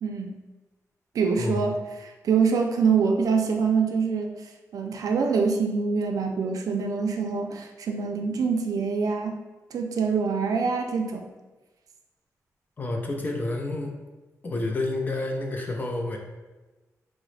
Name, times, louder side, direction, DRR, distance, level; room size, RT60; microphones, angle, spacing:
voice 1, 0.0-0.4 1.1-9.4 9.7-11.3, right 5 dB, 85° right, 4 dB, 0.4 m, -25 dB
voice 2, 12.8-14.0 14.4-16.2, left 2 dB, 30° left, 2 dB, 0.4 m, -29 dB
3.6 x 2.0 x 3.1 m, 1.2 s
wide cardioid pair, 160°, 6 cm